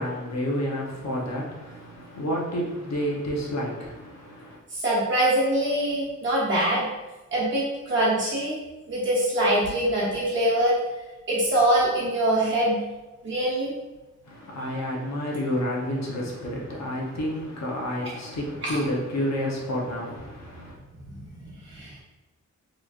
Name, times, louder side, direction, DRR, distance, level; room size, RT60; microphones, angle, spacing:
voice 1, 0.0-4.6 14.3-20.8, equal, 60° left, -2 dB, 0.8 m, -30 dB
voice 2, 4.7-6.9 7.3-8.6 8.9-10.8 11.3-12.8 13.2-13.7 18.0-18.1 18.6-18.8 21.1-22.0, right 1 dB, 40° right, -7 dB, 1.0 m, -24 dB
3.8 x 3.1 x 2.4 m, 1.1 s
wide cardioid pair, 155°, 31 cm